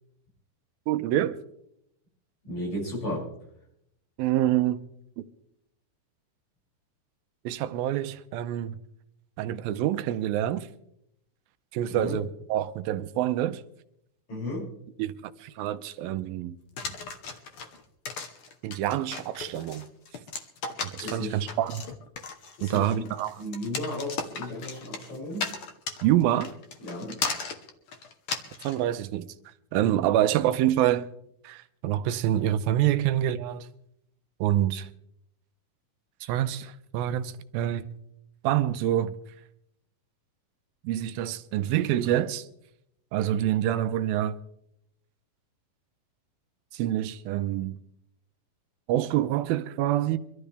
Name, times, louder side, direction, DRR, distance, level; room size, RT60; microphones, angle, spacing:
voice 1, 0.9-1.4 4.2-4.8 5.2-5.3 7.5-8.8 9.4-10.7 11.7-13.6 15.0-16.6 18.6-19.9 20.8-21.8 22.6-23.4 26.0-26.5 28.6-29.3 29.7-31.1 31.4-33.7 34.4-34.9 36.2-37.9 38.4-39.1 40.8-42.5 43.1-44.4 46.7-47.8 48.9-50.2, right 12 dB, 85° right, 2.5 m, -26 dB
voice 2, 2.4-3.3 11.9-12.2 14.3-14.7 21.0-21.5 22.6-23.1 23.4-25.5 26.8-27.2 29.7-29.8, left 1 dB, 50° left, 8.0 m, -34 dB
sound 1, 16.8-28.8, left 4 dB, 65° left, 1.4 m, -36 dB
24.5 x 13.0 x 3.4 m
omnidirectional pair, 4.1 m